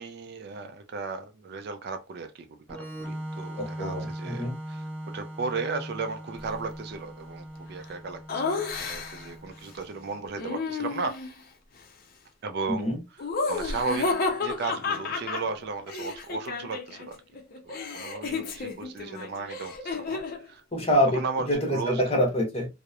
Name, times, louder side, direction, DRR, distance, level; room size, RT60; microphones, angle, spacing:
voice 1, 0.0-11.2 12.4-12.9 13.5-14.1 14.4-17.2 17.6-20.2 20.5-20.6 21.1-22.0, right 4 dB, 55° right, 0.3 m, -35 dB
Organ, 2.7-10.2, right 1 dB, 5° left, 0.9 m, -40 dB
voice 2, 3.6-4.5 12.7-13.0 20.7-22.7, equal, 30° left, 0.8 m, -26 dB
Laughter, 8.3-9.3 10.4-11.4 13.2-17.1 17.3-20.4, left 4 dB, 45° left, 0.5 m, -31 dB
2.8 x 2.0 x 2.3 m
head